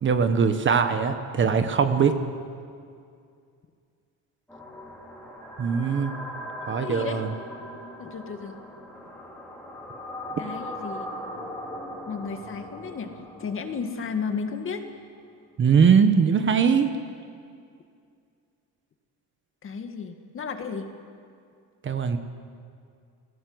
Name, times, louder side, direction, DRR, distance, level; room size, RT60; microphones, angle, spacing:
voice 1, 0.0-2.2 5.6-6.1 6.7-7.3 15.6-16.9 21.8-22.2, right 6 dB, 35° right, 8 dB, 1.3 m, -21 dB
sound 1, 4.5-14.6, equal, 5° left, 4.1 m, -39 dB
voice 2, 6.8-7.2 8.0-8.6 10.4-11.1 12.1-14.9 19.6-20.9, left 5 dB, 35° left, 6 dB, 2.0 m, -33 dB
29.0 x 18.0 x 8.0 m, 2.3 s
cardioid pair, 150°, 36 cm